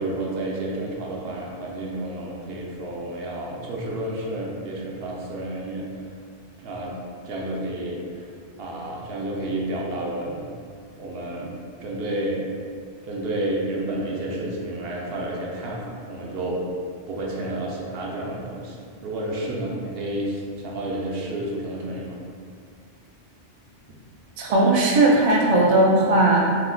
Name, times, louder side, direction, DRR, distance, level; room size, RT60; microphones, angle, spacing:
voice 1, 0.0-6.1 6.6-7.0 7.2-8.3 8.6-10.5 10.9-12.5 13.0-16.6 17.1-22.2, right 1 dB, 65° right, -2 dB, 0.7 m, -30 dB
voice 2, 24.4-26.6, right 2 dB, 80° right, -2 dB, 0.3 m, -18 dB
2.8 x 2.0 x 3.7 m, 2.2 s
omnidirectional pair, 1.2 m